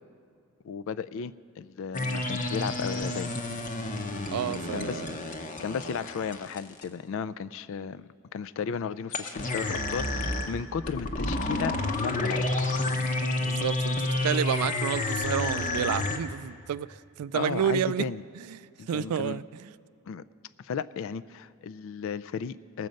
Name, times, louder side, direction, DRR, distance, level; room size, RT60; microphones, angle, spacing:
voice 1, 0.6-3.3 4.7-5.3 5.6-12.5 12.8-13.1 17.3-18.2 18.8-19.4 20.1-20.2 20.6-22.9, left 6 dB, 60° left, 0.3 m, -34 dB
sound 1, 1.9-6.8 9.1-16.2, left 2 dB, 35° left, 0.8 m, -30 dB
voice 2, 4.3-5.1 13.4-18.1 18.5-18.6 18.9-19.7, right 9 dB, 80° right, 0.3 m, -30 dB
19.0 x 7.6 x 5.2 m
head